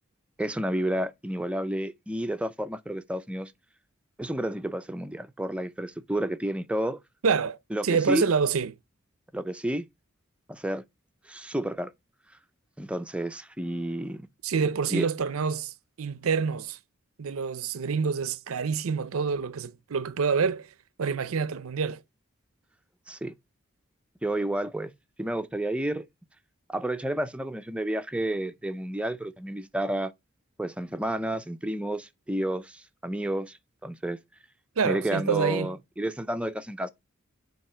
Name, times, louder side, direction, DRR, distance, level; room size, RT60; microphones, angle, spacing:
voice 1, 0.4-3.5 4.2-7.0 7.7-8.3 9.3-9.8 10.5-10.8 11.3-11.9 12.8-14.2 14.9-15.1 23.1-23.3 24.2-24.9 25.2-26.0 26.7-30.1 30.6-34.2 34.8-36.9, right 1 dB, 5° right, 0.5 m, -30 dB
voice 2, 7.2-7.6 7.8-8.8 14.4-16.8 17.2-20.7 21.0-22.0 34.8-35.7, right 5 dB, 80° right, 0.6 m, -27 dB
8.7 x 2.9 x 5.5 m
head